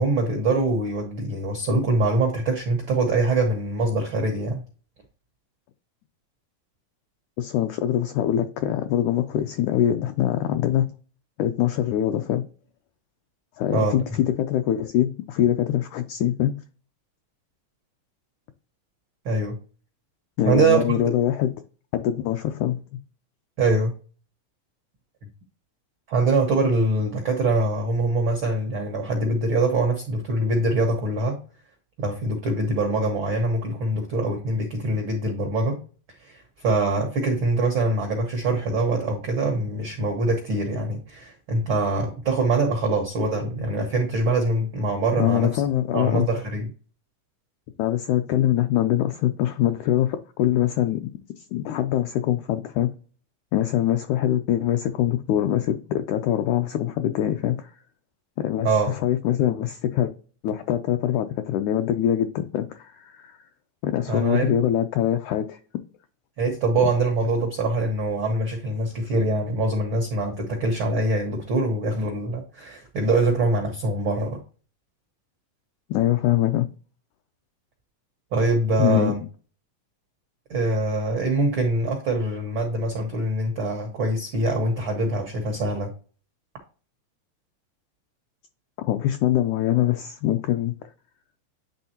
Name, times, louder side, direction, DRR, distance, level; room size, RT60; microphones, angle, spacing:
voice 1, 0.0-4.6 13.7-13.9 19.2-19.6 20.4-21.0 23.6-23.9 26.1-31.4 32.0-35.8 36.2-45.6 45.9-46.7 58.6-58.9 64.1-64.6 66.4-74.4 78.3-79.2 80.5-85.9, right 2 dB, 80° right, 1.1 m, -24 dB
voice 2, 7.4-10.9 11.4-12.4 13.6-16.5 20.4-21.5 21.9-22.8 45.2-46.3 47.8-51.0 51.5-52.9 53.5-57.7 58.4-60.1 60.4-63.4 63.8-65.6 66.8-66.9 75.9-76.7 78.8-79.1 88.8-90.7, left 11 dB, 90° left, 1.7 m, -23 dB
10.0 x 3.5 x 2.9 m
omnidirectional pair, 4.0 m